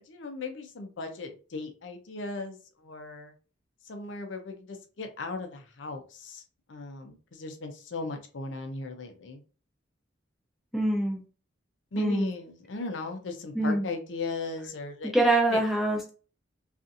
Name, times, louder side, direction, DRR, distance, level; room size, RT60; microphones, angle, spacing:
voice 1, 0.1-3.3 3.9-6.4 6.7-9.4 11.9-15.1 15.5-15.6, left 3 dB, 75° left, 5 dB, 0.5 m, -37 dB
voice 2, 10.7-11.2 12.0-12.3 13.5-13.9 15.1-16.1, right 1 dB, ahead, -1 dB, 0.6 m, -24 dB
2.6 x 2.4 x 2.4 m, 0.37 s
head